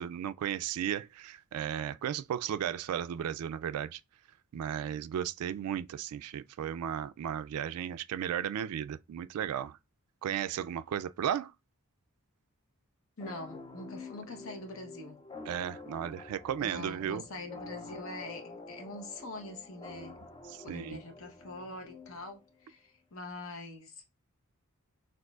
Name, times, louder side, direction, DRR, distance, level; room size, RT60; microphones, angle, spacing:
voice 1, 0.0-4.0 4.5-9.8 10.2-11.5 15.5-17.2 20.5-21.0, right 9 dB, 80° right, 0.3 m, -35 dB
voice 2, 13.2-15.2 16.6-20.1 20.6-24.1, left 2 dB, 60° left, 0.9 m, -44 dB
sound 1, 13.2-22.6, left 3 dB, 20° left, 0.5 m, -48 dB
6.2 x 2.5 x 2.3 m
head